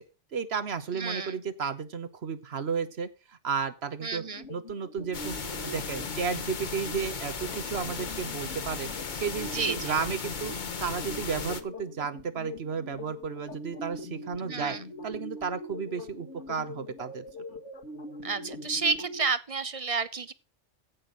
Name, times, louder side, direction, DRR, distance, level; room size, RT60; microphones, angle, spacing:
voice 1, 0.3-4.2 4.5-5.3 5.6-8.9 9.2-10.5 10.8-14.8 15.0-17.2, right 6 dB, 60° right, 1.3 m, -33 dB
voice 2, 0.9-1.4 4.0-4.4 9.5-9.9 14.4-14.9 18.2-20.3, right 4 dB, 35° right, 0.7 m, -31 dB
sound 1, 4.2-19.3, left 1 dB, 75° left, 2.1 m, -43 dB
sound 2, 5.1-11.6, left 5 dB, 45° left, 1.1 m, -36 dB
16.0 x 6.0 x 5.1 m
omnidirectional pair, 1.2 m